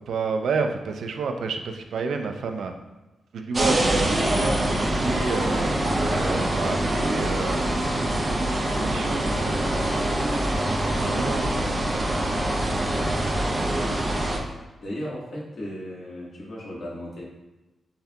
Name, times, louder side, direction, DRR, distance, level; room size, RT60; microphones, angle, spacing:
voice 1, 0.1-2.7 3.3-6.8 7.1-7.6 8.4-9.7 10.5-10.7 11.0-11.5, right 4 dB, 80° right, 5 dB, 0.4 m, -30 dB
sound 1, 3.5-14.4, right 1 dB, 30° right, 0.5 m, -24 dB
voice 2, 11.1-11.8 12.4-12.8 14.8-17.2, equal, 60° left, -5 dB, 1.3 m, -37 dB
5.7 x 2.7 x 2.2 m, 1.1 s
cardioid pair, 95°, 0 cm